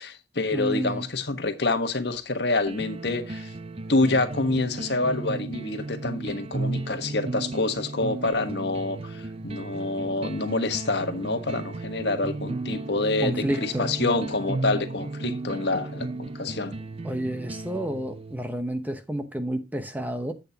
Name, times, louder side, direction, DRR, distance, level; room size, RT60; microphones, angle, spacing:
voice 1, 0.0-3.5 3.9-16.7, left 2 dB, 65° left, 1.3 m, -27 dB
voice 2, 0.5-1.1 13.2-13.9 17.0-20.3, right 1 dB, 10° right, 0.9 m, -30 dB
sound 1, 2.7-18.6, right 2 dB, 30° right, 0.5 m, -34 dB
10.5 x 8.1 x 2.8 m
head